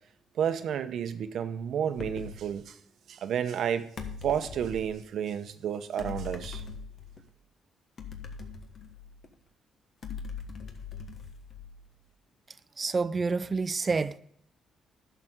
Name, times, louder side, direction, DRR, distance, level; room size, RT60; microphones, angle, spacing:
voice 1, 0.4-2.8 3.1-3.9 4.2-6.6, right 8 dB, 70° right, 0.8 m, -31 dB
sound 1, 2.0-2.4 4.0-4.9 6.0-7.2 8.0-9.3 10.0-11.9, left 5 dB, 50° left, 1.3 m, -41 dB
voice 2, 12.8-14.2, right 4 dB, 30° right, 0.5 m, -28 dB
10.5 x 6.8 x 3.7 m
cardioid pair, 90°, 0 cm